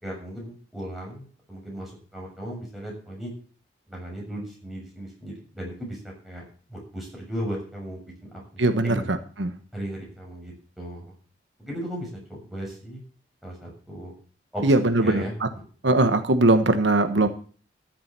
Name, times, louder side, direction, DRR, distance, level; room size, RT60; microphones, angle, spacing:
voice 1, 0.0-3.3 3.9-6.4 6.7-8.0 8.3-8.4 8.8-9.1 9.7-11.1 11.6-13.0 13.4-14.1 14.5-14.6 15.0-15.3, right 1 dB, ahead, -3 dB, 6.8 m, -36 dB
voice 2, 8.6-9.5 14.6-15.5 15.8-17.3, right 2 dB, 85° right, 9 dB, 1.3 m, -21 dB
14.0 x 7.5 x 7.5 m, 0.42 s
head